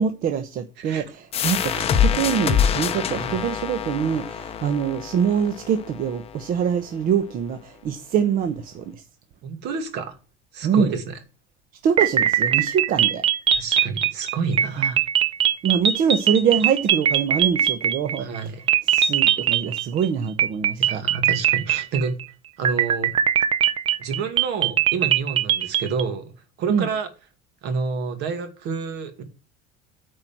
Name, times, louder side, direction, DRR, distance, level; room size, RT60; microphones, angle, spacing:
voice 1, 0.0-8.9 10.6-10.9 11.8-13.2 14.8-14.9 15.6-18.3 18.8-21.0 26.7-26.9, right 7 dB, 45° right, 1.0 m, -24 dB
sound 1, 1.3-6.7, left 8 dB, 30° left, 1.0 m, -25 dB
voice 2, 9.4-10.2 10.5-11.2 13.5-15.0 18.2-18.6 20.7-22.2 22.6-23.1 24.0-26.3 26.6-27.1 27.6-29.2, right 5 dB, 65° right, 2.4 m, -29 dB
sound 2, 12.0-18.4 18.7-20.1 20.4-22.2 22.6-26.0, right 9 dB, 30° right, 0.6 m, -21 dB
9.3 x 4.8 x 7.3 m
cardioid pair, 145°, 19 cm